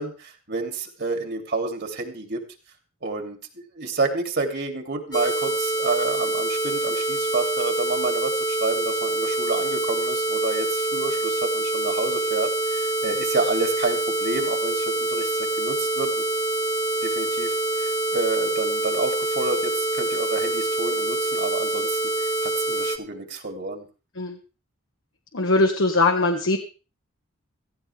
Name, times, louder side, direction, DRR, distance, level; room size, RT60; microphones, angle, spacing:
voice 1, 0.0-2.4 3.0-16.2 17.0-23.8, right 3 dB, 55° right, 4 dB, 2.8 m, -29 dB
sound 1, 5.1-23.0, right 2 dB, 20° left, 1.5 m, -25 dB
voice 2, 25.3-26.6, left 2 dB, 70° left, 4 dB, 1.4 m, -20 dB
17.0 x 14.5 x 3.4 m, 0.34 s
head